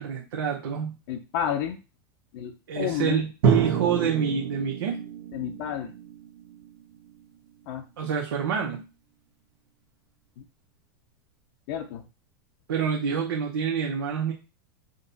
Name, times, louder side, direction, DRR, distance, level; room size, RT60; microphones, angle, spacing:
voice 1, 0.0-1.0 2.7-5.0 8.0-8.8 12.7-14.3, right 7 dB, 90° right, -1 dB, 0.9 m, -27 dB
voice 2, 1.1-1.8 2.3-3.3 5.3-5.9 7.7-7.8 10.4-10.5 11.7-12.0, left 9 dB, 65° left, 4 dB, 0.7 m, -31 dB
Drum, 3.4-7.2, right 6 dB, 75° right, 1.3 m, -28 dB
5.2 x 2.3 x 4.0 m, 0.30 s
supercardioid pair, 120°, 12 cm